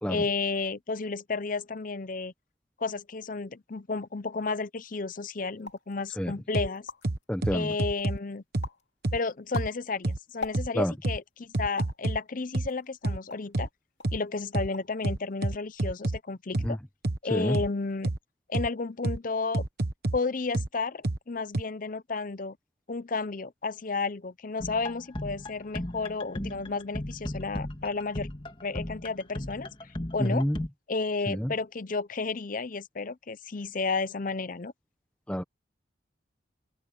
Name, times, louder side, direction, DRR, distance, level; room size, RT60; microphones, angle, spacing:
voice 1, 0.1-2.3 2.8-6.9 7.5-8.4 9.1-13.7 14.1-16.8 17.2-18.1 18.5-19.7 20.1-22.6 22.9-28.3 28.6-29.7 30.1-30.5 30.9-34.7, left 4 dB, 40° left, 0.6 m, -32 dB
sound 1, 5.6-5.9 6.4-6.5 6.7-7.2 7.7-8.2 8.6-8.9 9.3-11.0 11.8-12.1 12.7-13.6 14.0-14.2 14.5-15.0 15.3-15.8, left 4 dB, 60° left, 2.8 m, -41 dB
sound 2, 6.5-6.7 7.0-8.2 8.5-8.7 9.0-9.2 9.5-9.7 10.0-10.2 10.5-10.7 11.0-11.2 11.5-12.2 12.5-12.7 13.0-13.2 13.5-13.7 14.0-14.2 14.5-14.7 15.0-16.2 16.5-16.7 17.0-17.2 17.5-17.7 18.0-18.2 18.5-18.7 19.0-19.2 19.5-20.2 20.5-20.7 21.0-21.2 21.5-21.6, right 2 dB, 50° right, 1.2 m, -28 dB
voice 2, 7.3-7.7 10.7-10.9 16.6-16.8 17.3-17.6 30.2-30.6 31.3-31.5 35.3-35.4, equal, 5° left, 1.0 m, -28 dB
sound 3, 24.6-30.7, left 1 dB, 25° left, 2.0 m, -36 dB
open air
head